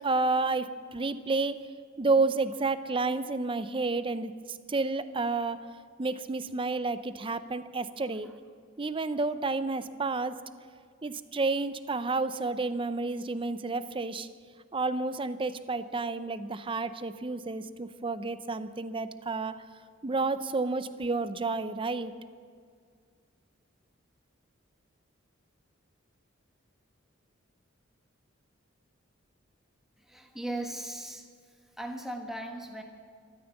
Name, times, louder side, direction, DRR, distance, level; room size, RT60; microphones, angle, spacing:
voice 1, 0.0-1.6 2.0-5.7 6.0-8.3 8.8-10.4 11.0-14.3 14.7-19.6 20.0-22.1, right 3 dB, 25° right, 13 dB, 0.6 m, -30 dB
voice 2, 30.0-31.3 31.8-32.8, right 1 dB, ahead, 3 dB, 1.4 m, -38 dB
13.5 x 13.5 x 7.1 m, 2.1 s
head